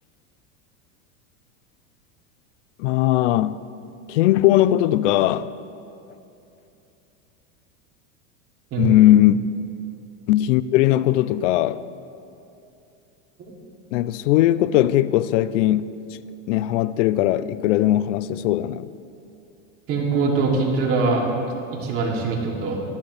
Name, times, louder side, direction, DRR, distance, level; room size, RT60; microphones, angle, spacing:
voice 1, 2.8-3.6 4.1-5.5 8.8-9.4 10.3-11.8 13.9-15.9 16.5-18.9, left 14 dB, 80° left, 0.5 m, -19 dB
voice 2, 19.9-21.3 21.7-22.8, right 4 dB, 40° right, 2.8 m, -23 dB
18.5 x 13.0 x 3.3 m
supercardioid pair, 135°, 36 cm